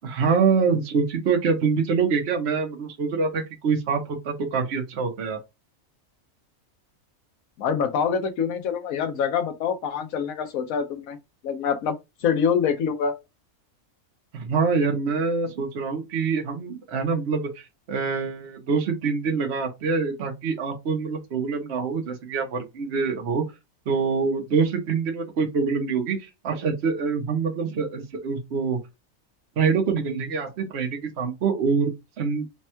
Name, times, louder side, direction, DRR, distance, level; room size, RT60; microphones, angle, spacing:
voice 1, 0.0-5.4 14.3-23.4 23.9-28.8 29.6-32.5, right 5 dB, 55° right, 1.0 m, -25 dB
voice 2, 7.6-11.2 11.4-11.9 12.2-13.2, left 7 dB, 90° left, 1.2 m, -25 dB
3.5 x 2.2 x 4.3 m
omnidirectional pair, 1.4 m